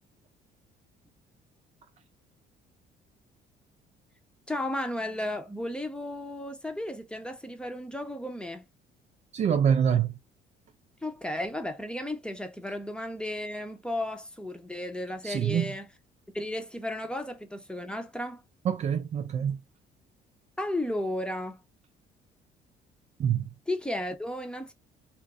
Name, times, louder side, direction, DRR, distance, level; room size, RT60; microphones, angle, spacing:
voice 1, 4.5-8.6 11.0-15.9 16.3-18.4 20.6-21.6 23.7-24.7, left 1 dB, 5° left, 0.7 m, -34 dB
voice 2, 9.3-10.1 15.2-15.7 18.6-19.6 23.2-23.5, right 8 dB, 40° right, 0.4 m, -25 dB
2.5 x 2.5 x 3.3 m
cardioid pair, 110°, 17 cm